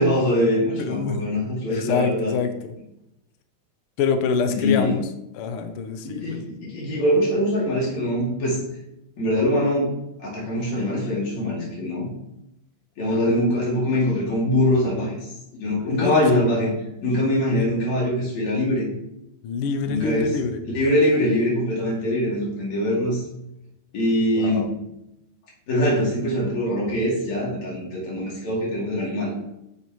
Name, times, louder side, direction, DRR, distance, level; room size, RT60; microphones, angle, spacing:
voice 1, 0.0-2.3 4.6-4.9 6.0-8.6 9.2-9.9 10.2-12.1 13.0-15.2 15.5-16.7 17.0-18.9 19.9-20.3 20.6-23.2 23.9-24.7 25.7-29.4, left 1 dB, 65° left, -4 dB, 3.8 m, -23 dB
voice 2, 0.8-1.3 1.7-2.5 4.0-5.1 5.3-6.5 13.1-13.2 15.9-16.5 19.4-20.6 24.3-24.7, left 5 dB, 85° left, 8 dB, 1.2 m, -26 dB
8.7 x 6.9 x 3.1 m, 0.86 s
omnidirectional pair, 3.5 m